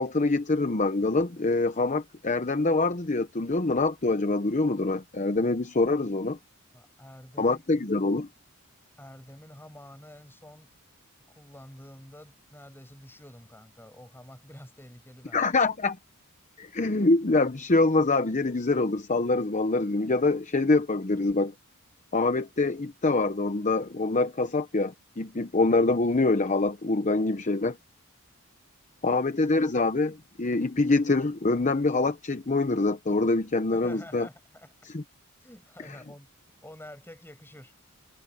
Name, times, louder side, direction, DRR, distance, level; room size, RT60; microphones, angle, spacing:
voice 1, 0.0-6.4 7.4-8.3 15.3-16.0 16.6-21.5 22.1-27.8 29.0-34.3 34.8-35.0, left 3 dB, 35° left, 0.9 m, -25 dB
voice 2, 6.7-7.6 8.9-10.7 11.3-15.5 33.7-34.7 35.4-36.3 36.6-37.7, left 1 dB, 10° left, 7.5 m, -48 dB
head